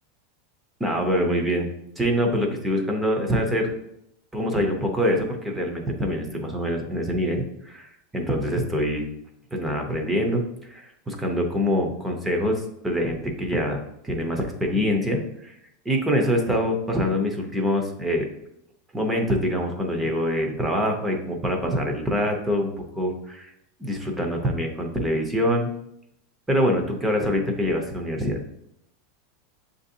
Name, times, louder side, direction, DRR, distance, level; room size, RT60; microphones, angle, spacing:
voice 1, 0.8-1.7 2.0-3.7 4.3-9.1 9.5-15.5 15.9-18.3 18.9-22.7 23.0-23.5 23.8-25.7 26.5-28.4, equal, 5° right, 2 dB, 0.5 m, -25 dB
7.4 x 2.6 x 2.7 m, 0.76 s
supercardioid pair, 165°, 0 cm